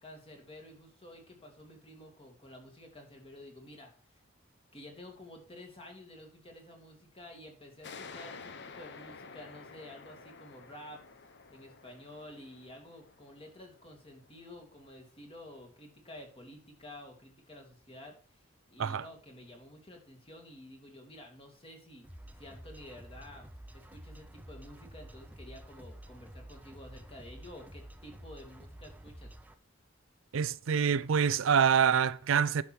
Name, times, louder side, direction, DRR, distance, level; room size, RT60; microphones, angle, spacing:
voice 1, 0.0-3.9 4.7-11.0 11.5-22.1 22.4-23.5 23.7-29.3, left 1 dB, 30° left, 2.5 m, -51 dB
sound 1, 7.8-15.0, left 5 dB, 60° left, 0.9 m, -51 dB
sound 2, 22.0-29.5, right 1 dB, 10° right, 0.7 m, -50 dB
voice 2, 30.3-32.6, right 7 dB, 75° right, 0.5 m, -26 dB
10.0 x 6.1 x 4.5 m
head